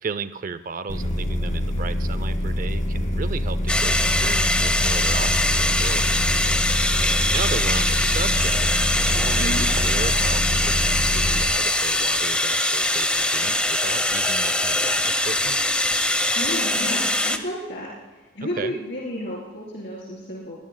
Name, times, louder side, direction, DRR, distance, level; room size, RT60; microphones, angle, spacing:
voice 1, 0.0-6.2 7.0-8.7 9.0-15.6 18.6-18.7, right 5 dB, 45° right, 13 dB, 0.5 m, -34 dB
sound 1, 0.9-11.5, left 1 dB, 40° left, 2.1 m, -25 dB
sound 2, 3.7-17.4, left 1 dB, 5° left, 0.7 m, -22 dB
voice 2, 16.3-17.9 18.3-20.6, equal, 60° left, -5 dB, 3.7 m, -31 dB
22.0 x 19.5 x 2.2 m, 1.3 s
head